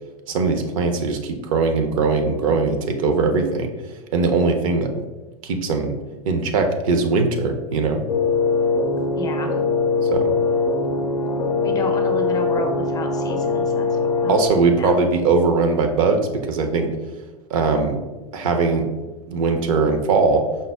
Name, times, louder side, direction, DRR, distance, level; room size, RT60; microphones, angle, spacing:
voice 1, 0.3-3.7 4.1-5.0 5.4-5.9 6.3-8.0 10.1-10.3 14.3-16.9 17.5-18.0 18.3-18.8 19.3-20.5, right 4 dB, 60° right, 5 dB, 0.6 m, -20 dB
sound 1, 8.1-14.5, left 4 dB, 85° left, 0.5 m, -21 dB
voice 2, 9.1-9.5 11.6-13.9 14.2-15.0, left 2 dB, 20° left, 4 dB, 0.5 m, -31 dB
5.3 x 2.0 x 3.4 m, 1.2 s
figure-of-eight pair, 95°, 20 cm